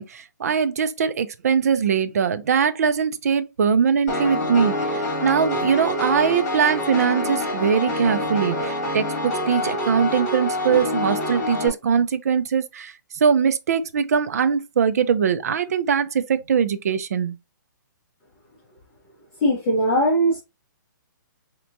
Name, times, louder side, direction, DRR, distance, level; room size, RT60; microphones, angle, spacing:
voice 1, 0.0-12.9 13.2-17.4, right 6 dB, 50° right, 0.5 m, -21 dB
Piano, 4.1-11.7, left 1 dB, 40° left, 2.2 m, -26 dB
voice 2, 19.4-20.4, right 1 dB, 20° left, 1.0 m, -19 dB
4.4 x 2.9 x 2.6 m
hypercardioid pair, 175°, 11 cm